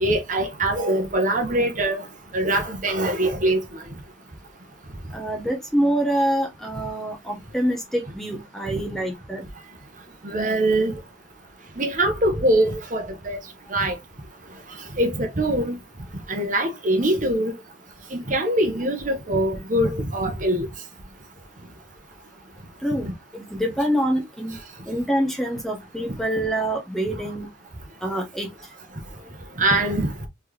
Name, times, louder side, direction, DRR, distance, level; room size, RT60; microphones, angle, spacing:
voice 1, 0.0-2.0 2.3-3.6 10.2-10.9 11.8-13.4 13.7-14.0 15.0-15.8 16.3-17.5 18.1-20.7 23.0-23.1 29.6-30.1, right 1 dB, 40° right, 1.0 m, -23 dB
voice 2, 5.1-9.4 22.8-23.1 23.3-24.6 24.9-27.5 28.0-28.5, right 1 dB, ahead, 1.0 m, -25 dB
4.3 x 3.5 x 2.9 m
head